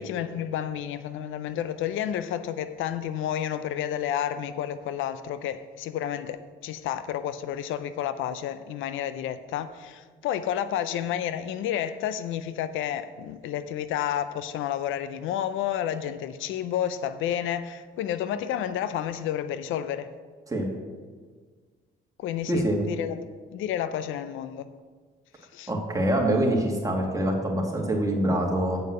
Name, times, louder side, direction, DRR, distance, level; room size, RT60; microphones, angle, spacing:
voice 1, 0.0-20.1 22.2-24.7 25.5-25.7, left 10 dB, 85° left, 12 dB, 0.5 m, -31 dB
voice 2, 22.5-22.8 25.7-28.8, right 1 dB, 15° right, 0 dB, 2.1 m, -25 dB
7.9 x 5.4 x 7.7 m, 1.5 s
cardioid pair, 90°, 20 cm